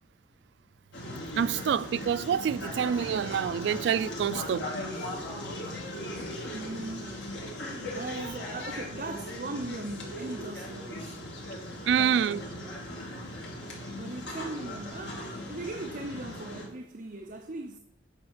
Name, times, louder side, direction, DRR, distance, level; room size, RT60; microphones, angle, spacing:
sound 1, 0.9-16.7, left 1 dB, 70° left, 2.7 m, -38 dB
voice 1, 1.4-4.7 11.9-12.4, right 8 dB, 65° right, 0.3 m, -27 dB
voice 2, 6.5-7.3 7.9-11.2 11.8-12.5 13.9-17.8, right 2 dB, 50° right, 0.7 m, -39 dB
8.3 x 5.6 x 7.0 m
head